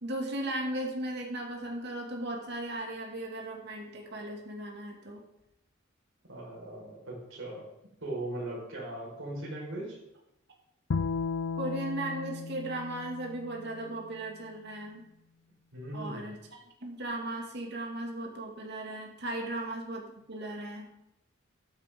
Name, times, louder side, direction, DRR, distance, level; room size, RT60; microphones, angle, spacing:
voice 1, 0.0-5.2 11.6-15.0 15.9-20.9, right 1 dB, 60° right, 0 dB, 2.2 m, -37 dB
voice 2, 6.2-7.7 8.0-10.0 15.7-16.3 19.4-19.5, right 1 dB, 85° right, -3 dB, 4.9 m, -39 dB
Bowed string instrument, 10.9-14.2, left 4 dB, 80° left, 0.5 m, -35 dB
14.0 x 8.8 x 3.7 m, 0.83 s
head